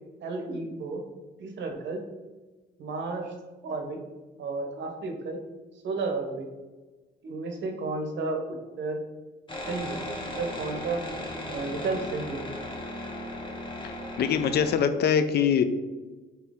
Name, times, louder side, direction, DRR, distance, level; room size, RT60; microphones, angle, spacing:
voice 1, 0.2-1.0 1.4-2.0 2.8-3.3 3.6-4.0 4.4-5.4 5.8-6.5 7.2-9.0 9.7-10.1 10.3-11.0 11.4-12.5, right 3 dB, 65° right, 4 dB, 0.8 m, -32 dB
sound 1, 9.5-14.8, left 1 dB, 25° left, 0.9 m, -36 dB
voice 2, 14.2-15.6, left 7 dB, 55° left, 9 dB, 0.4 m, -23 dB
4.2 x 2.7 x 3.5 m, 1.2 s
cardioid pair, 90°, 20 cm